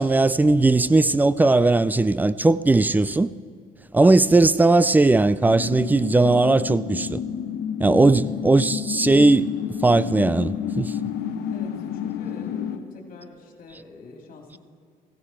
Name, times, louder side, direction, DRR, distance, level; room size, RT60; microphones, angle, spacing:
voice 1, 0.0-3.3 3.9-7.2 7.8-9.5 9.8-10.9, right 2 dB, 10° right, 0.3 m, -18 dB
sound 1, 5.4-12.8, left 8 dB, 80° left, 0.9 m, -30 dB
voice 2, 8.2-8.7 11.5-14.6, left 3 dB, 55° left, 2.5 m, -44 dB
15.5 x 15.0 x 4.4 m
cardioid pair, 110°, 17 cm